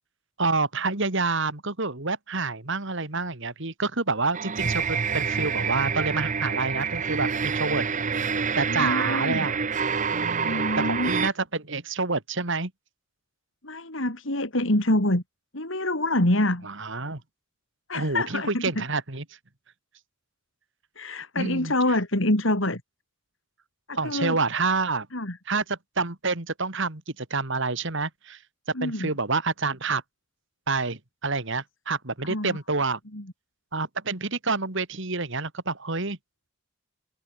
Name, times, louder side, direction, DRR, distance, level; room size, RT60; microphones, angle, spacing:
voice 1, 0.4-7.8 8.1-8.3 8.6-9.6 10.1-12.7 16.6-17.2 17.9-19.2 21.4-21.7 24.0-25.1 25.5-28.4 28.8-30.0 30.7-33.0 33.7-36.2, right 3 dB, 60° right, 2.5 m, -28 dB
sound 1, 4.3-11.3, right 5 dB, 35° right, 0.8 m, -27 dB
voice 2, 8.7-9.5 10.4-11.1 13.6-15.2 15.5-16.7 17.9-18.8 21.0-22.8 23.9-24.4 25.1-25.4 28.7-29.1 32.2-32.6 33.1-33.2, left 1 dB, 60° left, 3.8 m, -26 dB
head